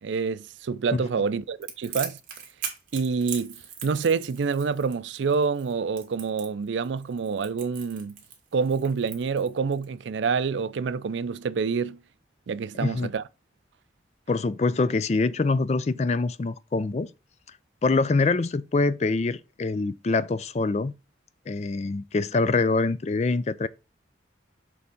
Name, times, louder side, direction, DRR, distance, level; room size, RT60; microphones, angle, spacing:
voice 1, 0.0-2.2 2.9-3.6 3.8-8.1 8.5-12.0 12.5-13.2, right 5 dB, 85° right, 0.4 m, -27 dB
Crackle, 1.6-9.9, right 7 dB, 50° right, 1.8 m, -40 dB
voice 2, 12.7-13.1 14.3-17.1 17.8-20.9 21.5-23.7, left 3 dB, 35° left, 0.4 m, -25 dB
6.9 x 3.5 x 5.1 m
head